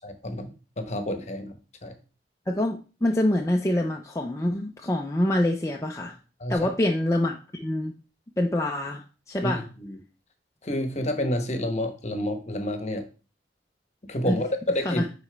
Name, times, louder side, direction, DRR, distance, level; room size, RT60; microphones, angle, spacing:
voice 1, 0.0-1.5 1.8-1.9 6.4-6.6 9.4-10.0 10.6-13.0 14.1-15.0, left 1 dB, 40° left, 7 dB, 1.0 m, -29 dB
voice 2, 2.5-6.2 6.5-7.9 8.4-9.6 14.3-14.4 14.9-15.0, left 1 dB, 15° left, 1 dB, 0.5 m, -26 dB
9.8 x 4.1 x 3.4 m, 0.35 s
head